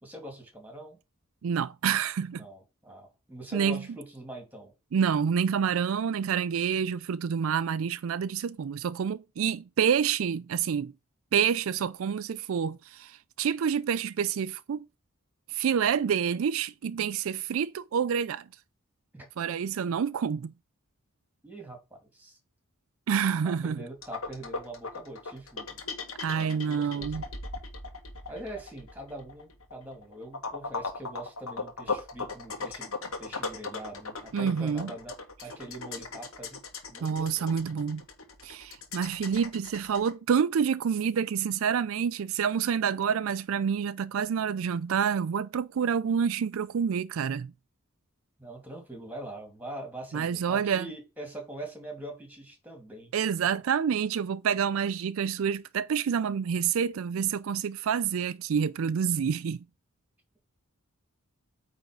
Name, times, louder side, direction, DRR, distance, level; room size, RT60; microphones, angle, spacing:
voice 1, 0.0-1.0 2.3-4.7 19.1-19.3 21.4-22.4 23.4-25.8 26.3-27.3 28.3-32.9 33.2-36.6 36.9-37.6 48.4-53.1 53.4-53.5, right 1 dB, 10° right, 2.7 m, -43 dB
voice 2, 1.4-2.4 3.5-3.8 4.9-10.9 11.3-14.9 15.5-18.5 19.4-20.5 23.1-23.8 26.2-27.2 34.3-34.9 37.0-38.0 38.4-47.5 50.1-50.9 53.1-59.6, right 7 dB, 70° right, 0.4 m, -28 dB
sound 1, 24.0-40.1, left 4 dB, 75° left, 1.7 m, -37 dB
9.0 x 3.5 x 5.3 m
head